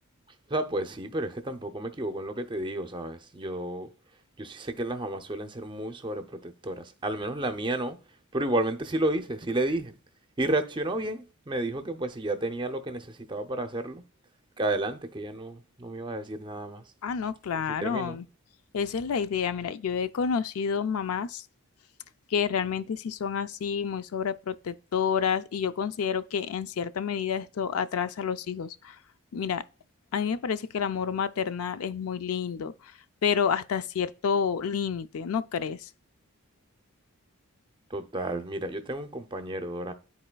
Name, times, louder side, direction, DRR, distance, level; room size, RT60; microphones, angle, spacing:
voice 1, 0.5-3.9 4.4-8.0 8.3-10.0 10.4-14.0 14.6-16.8 17.7-18.2 37.9-39.9, right 1 dB, 20° right, 0.5 m, -31 dB
voice 2, 17.0-18.2 18.7-21.4 22.3-28.9 29.3-29.6 30.1-32.7 33.2-35.8, left 7 dB, 75° left, 0.4 m, -29 dB
12.5 x 4.2 x 2.2 m
head